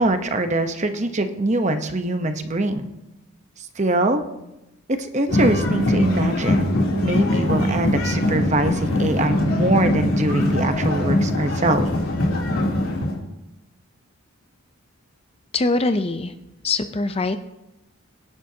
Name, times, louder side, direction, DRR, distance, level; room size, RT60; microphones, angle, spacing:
voice 1, 0.0-2.9 3.8-4.2 5.0-6.7 7.0-11.9, right 2 dB, 30° right, 7 dB, 0.9 m, -23 dB
sound 1, 5.3-13.2, left 1 dB, 80° left, 3.1 m, -22 dB
voice 2, 15.5-16.3 16.6-17.4, left 3 dB, 25° left, 9 dB, 0.5 m, -22 dB
23.5 x 11.0 x 2.8 m, 0.95 s
head